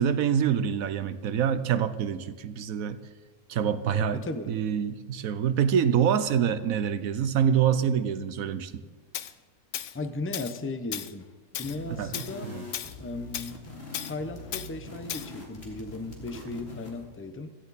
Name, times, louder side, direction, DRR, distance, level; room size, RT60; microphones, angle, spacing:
voice 1, 0.0-3.0 3.5-8.8 11.9-12.1 12.4-12.7, right 8 dB, 70° right, 12 dB, 1.1 m, -26 dB
voice 2, 4.1-4.6 9.9-11.3 11.6-12.6 13.0-13.6 14.1-17.5, left 2 dB, 15° left, 8 dB, 0.4 m, -36 dB
Tools, 9.1-9.3 9.7-9.9 10.3-10.6 10.9-11.1 11.5-11.8 12.1-12.3 12.7-12.9 13.3-13.5 13.9-14.1 14.5-14.7 15.1-15.3, left 10 dB, 65° left, 0.9 m, -35 dB
sound 1, 11.6-17.1, left 3 dB, 45° left, 2.7 m, -43 dB
16.5 x 14.0 x 4.1 m, 1.4 s
omnidirectional pair, 1.6 m